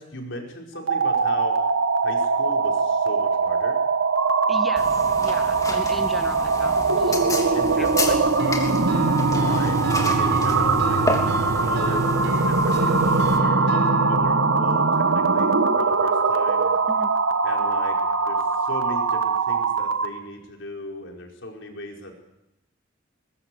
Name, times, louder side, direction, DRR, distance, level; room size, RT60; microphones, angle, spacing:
voice 1, 0.0-1.6 2.0-3.8 7.5-8.2 9.2-11.0 11.5-16.7 17.4-22.2, left 1 dB, 65° left, 2 dB, 5.2 m, -37 dB
sound 1, 0.8-20.2, right 4 dB, 90° right, 1.6 m, -21 dB
voice 2, 4.5-7.2 7.7-8.3 16.9-17.1, equal, ahead, 6 dB, 1.4 m, -36 dB
sound 2, 4.8-13.4, left 2 dB, 15° left, 3.2 m, -32 dB
sound 3, 8.4-14.1, right 1 dB, 60° right, 5.6 m, -31 dB
22.5 x 21.0 x 7.9 m, 0.91 s
head